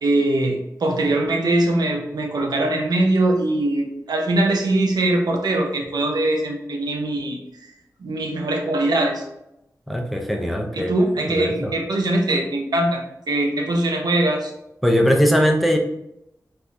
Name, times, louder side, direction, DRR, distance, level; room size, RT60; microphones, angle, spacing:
voice 1, 0.0-7.4 8.0-9.3 10.7-14.5, right 1 dB, 85° right, 1 dB, 0.5 m, -21 dB
voice 2, 9.9-10.9 11.3-11.7 14.8-15.8, equal, ahead, 2 dB, 0.5 m, -20 dB
3.4 x 2.3 x 2.6 m, 0.84 s
wide cardioid pair, 55°, 7 cm